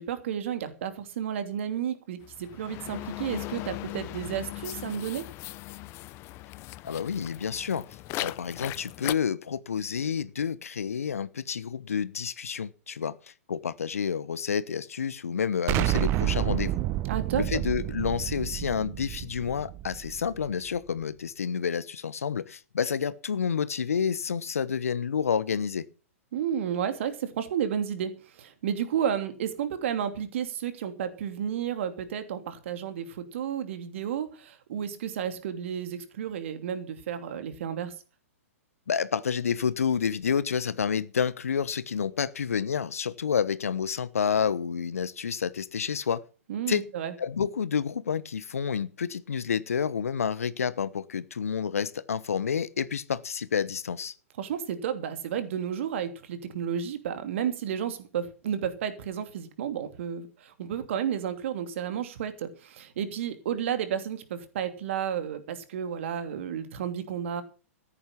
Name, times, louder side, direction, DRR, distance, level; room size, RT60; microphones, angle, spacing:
voice 1, 0.0-5.2 17.0-17.6 26.3-37.9 46.5-47.1 54.4-67.4, right 9 dB, 55° right, 2.9 m, -32 dB
sound 1, 2.2-9.1, left 19 dB, 30° left, 0.7 m, -38 dB
voice 2, 6.8-7.9 8.2-16.8 17.3-25.9 38.9-46.2 46.7-46.8 47.2-54.1, left 7 dB, 75° left, 1.0 m, -29 dB
Explosion, 15.7-20.5, right 15 dB, 30° right, 0.7 m, -29 dB
14.5 x 10.5 x 5.9 m
figure-of-eight pair, 110°, 8 cm